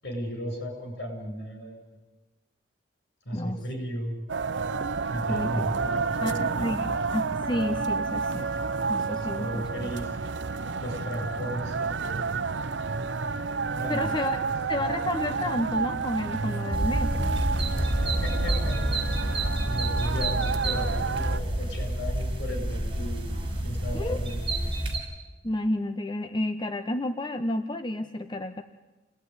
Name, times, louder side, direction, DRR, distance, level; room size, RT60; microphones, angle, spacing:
voice 1, 0.0-2.0 3.3-4.2 5.1-7.0 9.2-12.3 13.7-14.2 17.7-18.9 19.6-23.3 23.6-24.6, equal, 70° left, 4 dB, 7.6 m, -35 dB
voice 2, 3.3-3.6 5.3-5.5 6.2-8.5 8.9-9.9 13.9-14.4 14.7-17.4 23.9-24.2 25.4-28.6, left 1 dB, 25° left, 7 dB, 1.0 m, -31 dB
sound 1, 4.3-21.4, right 4 dB, 85° right, 0.8 m, -30 dB
sound 2, 16.7-25.0, right 1 dB, 30° right, 5.4 m, -28 dB
28.5 x 19.0 x 9.7 m, 1.1 s
head